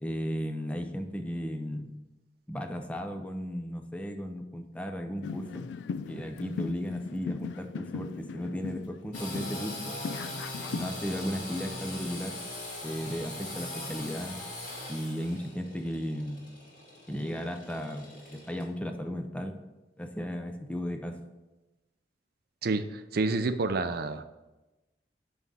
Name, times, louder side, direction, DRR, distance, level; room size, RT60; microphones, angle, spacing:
voice 1, 0.0-1.9 2.5-5.7 6.1-10.0 10.7-12.4 12.8-14.4 14.9-16.4 17.1-19.5 20.0-21.2, equal, 5° left, 5 dB, 0.6 m, -35 dB
sound 1, 5.2-10.9, left 5 dB, 90° left, 0.3 m, -38 dB
Engine / Sawing, 9.1-18.6, left 1 dB, 50° left, 2.1 m, -41 dB
voice 2, 22.6-24.2, right 3 dB, 60° right, 10 dB, 0.5 m, -29 dB
5.7 x 5.4 x 6.1 m, 1.1 s
head